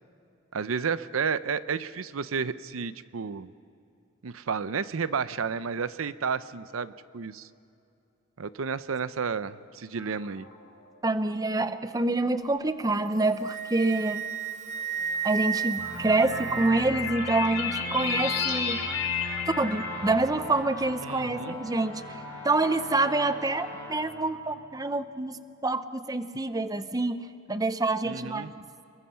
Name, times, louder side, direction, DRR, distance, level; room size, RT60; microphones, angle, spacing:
voice 1, 0.5-3.5 4.2-7.5 8.4-10.5 21.0-21.6 28.0-28.5, right 6 dB, 80° right, 15 dB, 0.6 m, -31 dB
sound 1, 10.0-10.6 11.5-11.6 12.8-12.9 15.0-20.1, left 6 dB, 85° left, 3.4 m, -33 dB
voice 2, 11.0-14.2 15.2-18.8 19.6-22.2 22.4-25.4 25.6-27.2 27.5-28.5, right 2 dB, 20° right, 11 dB, 0.7 m, -27 dB
Wind instrument woodwind instrument, 13.1-17.0, right 7 dB, 35° right, 1.0 m, -33 dB
sound 2, 15.8-25.1, left 1 dB, 10° left, 5.8 m, -40 dB
28.5 x 22.0 x 5.7 m, 2.6 s
head